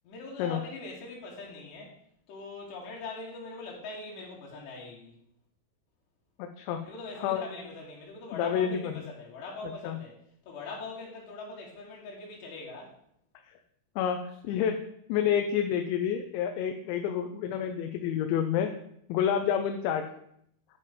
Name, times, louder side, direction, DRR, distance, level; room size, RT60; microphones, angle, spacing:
voice 1, 0.0-2.0 2.3-5.1 6.9-10.2 10.5-12.9, left 3 dB, 65° left, -3 dB, 4.0 m, -42 dB
voice 2, 6.4-6.8 7.2-7.4 8.3-9.1 9.6-10.0 14.0-14.8 15.1-18.7 19.1-20.0, left 8 dB, 80° left, 6 dB, 2.8 m, -29 dB
9.4 x 5.4 x 5.1 m, 0.72 s
omnidirectional pair, 5.5 m